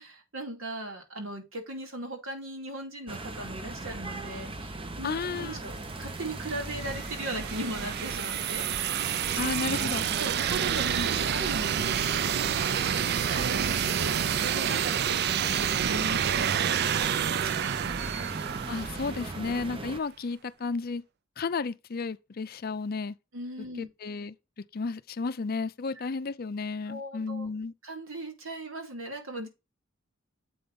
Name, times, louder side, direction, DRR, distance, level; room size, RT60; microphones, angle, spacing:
voice 1, 0.0-9.5 9.9-18.2 23.3-23.9 26.0-26.1 26.9-27.5 27.8-29.5, right 1 dB, 80° right, 2.4 m, -39 dB
sound 1, 3.1-20.0, right 2 dB, 25° right, 0.8 m, -39 dB
voice 2, 5.0-5.6 9.4-10.1 18.7-21.0 21.4-23.2 23.8-24.4 24.7-27.7, left 4 dB, 45° left, 0.5 m, -33 dB
sound 2, 6.0-19.7, right 9 dB, 50° right, 0.4 m, -29 dB
7.7 x 5.0 x 4.0 m
head